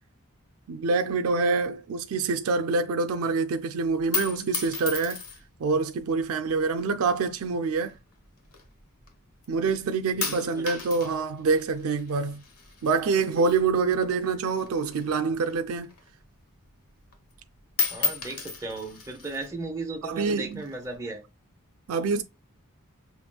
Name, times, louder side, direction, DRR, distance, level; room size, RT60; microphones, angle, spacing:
voice 1, 0.7-5.2 5.6-8.0 9.5-12.4 12.8-15.9 20.0-20.6 21.9-22.2, right 4 dB, 65° right, 0.4 m, -26 dB
sound 1, 3.9-5.6 6.4-6.9 7.7-9.1 9.4-9.8 10.2-14.3 14.5-16.2 16.6-16.7 17.0-17.4 17.7-19.5 20.3-20.9, left 5 dB, 85° left, 1.1 m, -34 dB
voice 2, 10.1-10.7 17.9-21.2, right 2 dB, 15° right, 0.8 m, -36 dB
5.8 x 3.0 x 2.3 m
head